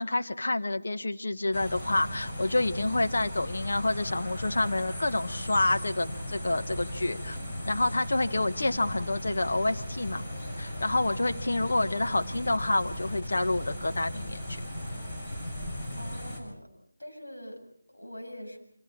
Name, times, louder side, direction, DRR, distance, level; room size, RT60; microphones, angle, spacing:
voice 1, 0.0-7.4 7.6-10.2 10.6-14.6, left 2 dB, 60° left, 7 dB, 1.5 m, -28 dB
sound 1, 1.5-16.4, equal, 25° left, 6.3 m, -37 dB
voice 2, 16.0-16.7 17.0-18.6, equal, 85° left, 3 dB, 7.3 m, -43 dB
28.5 x 25.5 x 4.5 m, 0.65 s
figure-of-eight pair, 160°, 0 cm